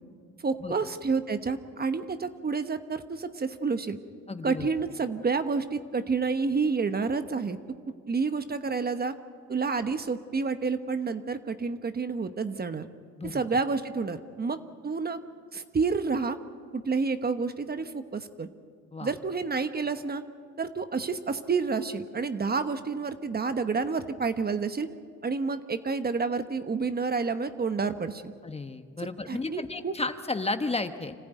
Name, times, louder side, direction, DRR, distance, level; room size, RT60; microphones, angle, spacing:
voice 1, 0.4-4.0 4.4-7.6 7.9-9.1 9.5-12.9 13.2-15.2 15.5-16.4 16.7-18.5 19.0-20.2 20.6-24.9 25.2-28.3 29.0-29.9, right 4 dB, 30° right, 10 dB, 1.1 m, -29 dB
voice 2, 4.3-4.7 13.2-13.3 18.9-19.1 28.4-31.1, left 3 dB, 20° left, 9 dB, 1.1 m, -33 dB
26.0 x 15.0 x 9.2 m, 2.1 s
cardioid pair, 90°, 30 cm